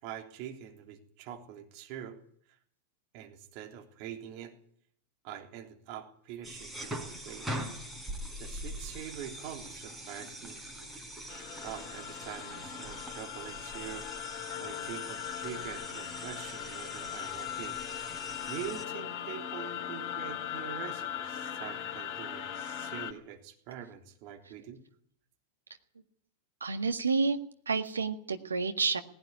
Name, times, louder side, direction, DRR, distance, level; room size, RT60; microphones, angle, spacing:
voice 1, 0.0-2.2 3.1-4.6 5.2-7.5 8.4-10.6 11.6-14.1 14.6-17.8 18.0-24.8, right 10 dB, 45° right, 3 dB, 3.4 m, -44 dB
sound 1, 6.4-18.8, equal, 10° right, 4.3 m, -43 dB
sound 2, 11.3-23.1, left 10 dB, 35° left, 3.3 m, -39 dB
voice 2, 26.6-27.4 27.7-29.0, right 4 dB, 75° right, 7 dB, 1.8 m, -29 dB
18.5 x 17.0 x 9.8 m, 0.63 s
figure-of-eight pair, 90°, 0 cm